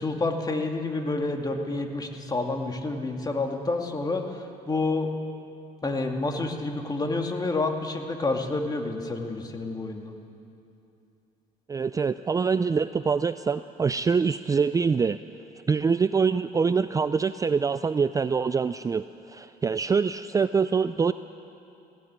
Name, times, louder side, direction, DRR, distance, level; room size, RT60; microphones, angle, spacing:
voice 1, 0.0-4.4 4.7-5.1 5.8-10.1, left 3 dB, 25° left, 3 dB, 2.2 m, -29 dB
voice 2, 11.7-15.2 15.7-21.1, right 5 dB, 20° right, 12 dB, 0.4 m, -25 dB
19.5 x 17.0 x 9.4 m, 2.7 s
cardioid pair, 110°, 17 cm